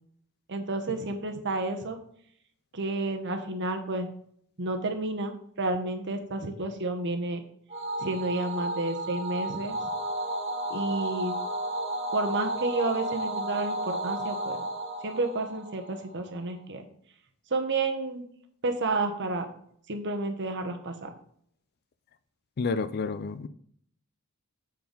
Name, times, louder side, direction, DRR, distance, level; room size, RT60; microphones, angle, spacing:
voice 1, 0.5-2.0 2.7-4.1 4.6-7.4 8.0-9.9 10.7-11.3 12.1-14.6 15.0-16.9 17.5-18.3 18.6-19.5 19.9-21.1, right 2 dB, 55° right, 1.1 m, -30 dB
sound 1, 7.7-16.3, right 1 dB, 30° right, 1.6 m, -33 dB
voice 2, 22.6-23.5, left 4 dB, 45° left, 0.4 m, -30 dB
7.8 x 4.6 x 5.3 m
head